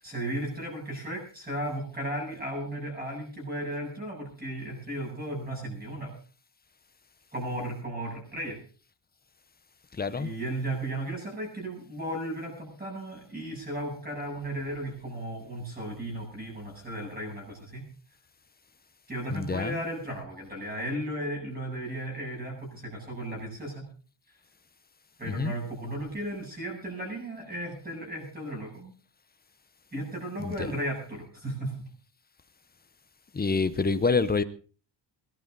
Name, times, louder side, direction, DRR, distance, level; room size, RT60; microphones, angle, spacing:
voice 1, 0.0-6.1 7.3-8.6 10.1-17.9 19.1-23.9 25.2-28.9 29.9-31.7, right 1 dB, 20° right, 8.0 m, -35 dB
voice 2, 9.9-10.3 19.3-19.8 25.2-25.5 30.4-30.5 33.3-34.4, left 4 dB, 20° left, 0.7 m, -27 dB
23.0 x 12.0 x 4.0 m
wide cardioid pair, 180°, 45 cm